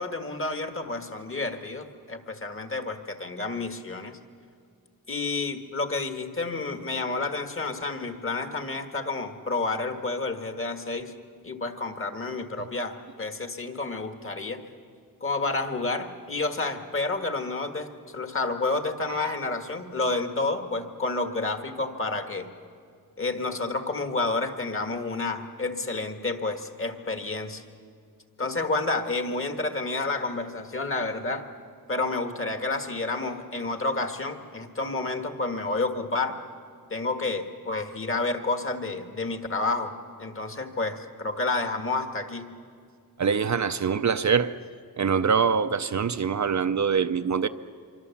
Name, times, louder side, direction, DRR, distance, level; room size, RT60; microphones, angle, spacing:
voice 1, 0.0-4.2 5.1-11.1 11.4-14.6 15.2-22.5 23.2-27.6 28.4-31.5 31.9-36.4 36.9-42.5, left 3 dB, 35° left, 1.7 m, -30 dB
voice 2, 43.2-44.5 45.0-47.5, right 6 dB, 50° right, 0.6 m, -24 dB
26.0 x 24.0 x 7.2 m
wide cardioid pair, 160°, 38 cm